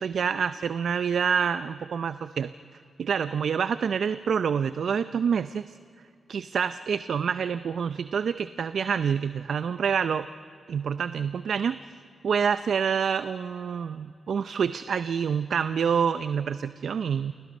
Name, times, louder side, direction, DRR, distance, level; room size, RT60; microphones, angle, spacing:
voice 1, 0.0-2.5 3.0-5.6 6.3-10.3 10.7-11.8 12.2-17.3, right 7 dB, 75° right, 12 dB, 0.5 m, -27 dB
29.0 x 24.5 x 5.3 m, 2.3 s
supercardioid pair, 45°, 0 cm